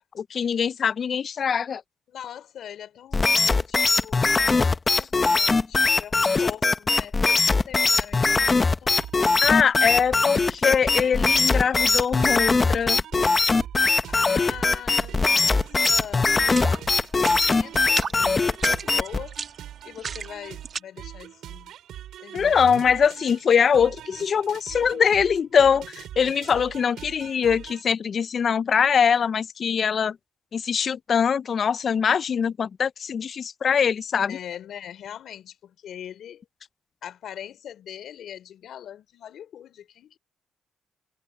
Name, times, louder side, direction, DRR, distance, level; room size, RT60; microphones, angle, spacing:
voice 1, 0.1-1.8 9.4-13.0 22.3-30.2 30.5-34.4, left 7 dB, 50° left, 0.5 m, -22 dB
voice 2, 2.1-9.4 14.1-19.4 19.8-21.7 22.2-22.8 34.3-36.4 37.0-40.2, left 10 dB, 70° left, 4.1 m, -41 dB
sound 1, 3.1-19.2, left 3 dB, 30° left, 0.9 m, -21 dB
sound 2, 9.0-27.8, right 11 dB, 80° right, 5.9 m, -42 dB
sound 3, 15.8-16.0 16.4-16.8 17.1-17.5 17.8-18.2 18.5-20.8, right 6 dB, 45° right, 2.0 m, -32 dB
cardioid pair, 90°, 0 cm